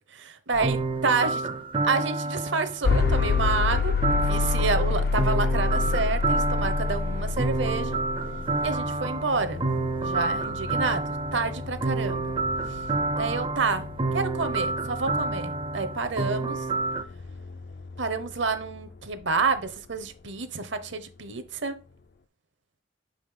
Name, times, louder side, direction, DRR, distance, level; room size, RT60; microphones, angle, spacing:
voice 1, 0.1-1.5 1.8-8.0 8.6-9.6 10.0-11.0 11.3-12.3 12.7-12.8 13.2-13.9 14.1-16.7 18.0-21.8, right 4 dB, 65° right, 0.9 m, -29 dB
sound 1, 0.5-17.0, right 3 dB, 25° right, 0.4 m, -29 dB
sound 2, 2.8-18.8, left 4 dB, 50° left, 0.3 m, -29 dB
6.0 x 5.1 x 3.7 m
head